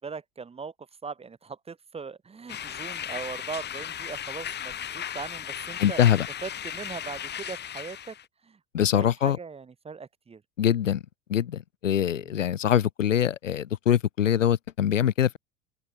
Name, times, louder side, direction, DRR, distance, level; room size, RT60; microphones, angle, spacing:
voice 1, 0.0-6.0 6.4-8.1 8.4-10.4 12.0-12.6, right 5 dB, 15° right, 1.2 m, -40 dB
sound 1, 2.5-8.2, left 9 dB, 25° left, 1.4 m, -36 dB
voice 2, 5.8-6.3 8.7-9.4 10.6-11.0 11.3-15.4, left 10 dB, 75° left, 0.8 m, -23 dB
open air
figure-of-eight pair, 70°, 38 cm